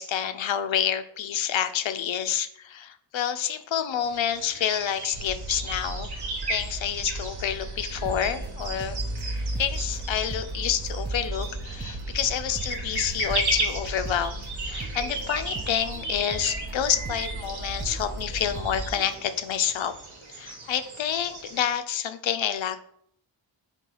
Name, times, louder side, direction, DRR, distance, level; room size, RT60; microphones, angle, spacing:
voice 1, 0.0-6.1 6.5-9.0 9.6-19.9 20.3-22.8, left 9 dB, 75° left, 9 dB, 0.6 m, -28 dB
sound 1, 4.0-21.7, right 2 dB, 55° right, 1.3 m, -36 dB
sound 2, 5.1-18.9, right 1 dB, 85° right, 1.3 m, -36 dB
sound 3, 7.9-19.2, right 4 dB, 25° right, 0.4 m, -43 dB
4.5 x 3.8 x 5.5 m, 0.67 s
wide cardioid pair, 165°, 47 cm